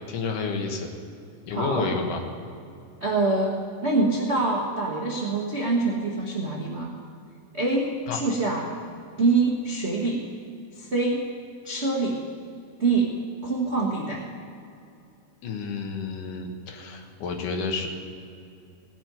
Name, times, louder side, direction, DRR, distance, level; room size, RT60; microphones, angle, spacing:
voice 1, 0.1-0.9 1.5-2.2 8.1-8.2 15.4-17.9, left 4 dB, 70° left, 3 dB, 2.9 m, -30 dB
voice 2, 1.5-1.9 3.0-6.9 7.5-8.6 9.2-10.2 10.8-11.2 11.6-12.2 12.8-13.1 13.4-14.2, right 3 dB, 65° right, -3 dB, 0.6 m, -25 dB
17.5 x 6.2 x 9.3 m, 2.6 s
omnidirectional pair, 3.9 m